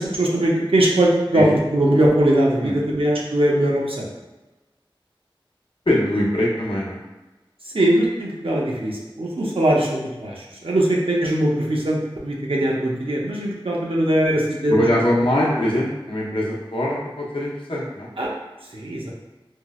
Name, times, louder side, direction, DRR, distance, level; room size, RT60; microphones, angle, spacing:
voice 1, 0.0-4.1 7.7-14.7 15.5-15.6 18.2-18.3 18.7-19.1, right 1 dB, 80° right, -3 dB, 0.6 m, -20 dB
voice 2, 5.9-7.0 14.7-18.1, left 1 dB, 70° left, -4 dB, 0.7 m, -22 dB
4.3 x 2.0 x 2.3 m, 1.1 s
wide cardioid pair, 40°, 9 cm